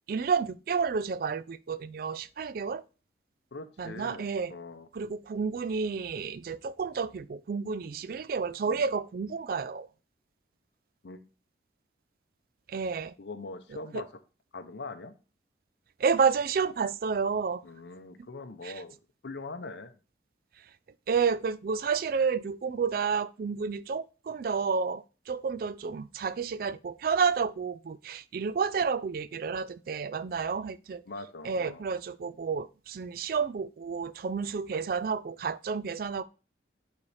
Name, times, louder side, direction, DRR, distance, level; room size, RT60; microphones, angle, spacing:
voice 1, 0.1-2.8 3.8-4.5 4.9-9.9 12.7-13.1 13.9-14.0 16.0-17.6 18.6-18.7 21.1-31.0 31.4-36.2, right 5 dB, 50° right, 0.3 m, -30 dB
voice 2, 3.5-4.9 8.6-8.9 11.0-11.3 13.2-14.1 14.5-15.1 17.6-18.9 19.2-19.9 31.1-31.8, left 3 dB, 70° left, 0.6 m, -42 dB
9.6 x 4.1 x 3.3 m
head